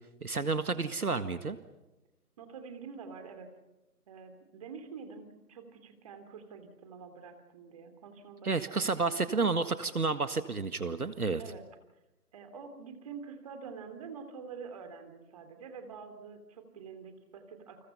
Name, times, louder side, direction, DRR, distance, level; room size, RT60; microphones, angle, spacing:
voice 1, 0.2-1.6 8.4-11.4, right 4 dB, 70° right, 11 dB, 1.8 m, -30 dB
voice 2, 2.4-3.5 4.1-9.6 11.4-11.6 12.3-17.9, right 5 dB, 25° right, 8 dB, 2.9 m, -47 dB
29.5 x 28.0 x 5.6 m, 0.98 s
figure-of-eight pair, 150°, 47 cm